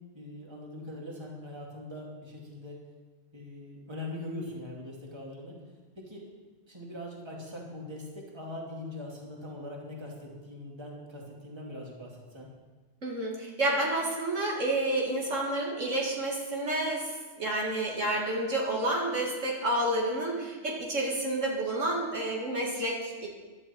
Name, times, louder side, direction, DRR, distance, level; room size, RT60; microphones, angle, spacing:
voice 1, 0.1-2.8 3.3-5.6 6.0-12.5, left 1 dB, 20° right, -2 dB, 2.4 m, -42 dB
voice 2, 13.0-17.1 17.4-23.3, right 1 dB, 60° right, -2 dB, 2.4 m, -29 dB
14.5 x 11.5 x 4.4 m, 1.3 s
omnidirectional pair, 1.4 m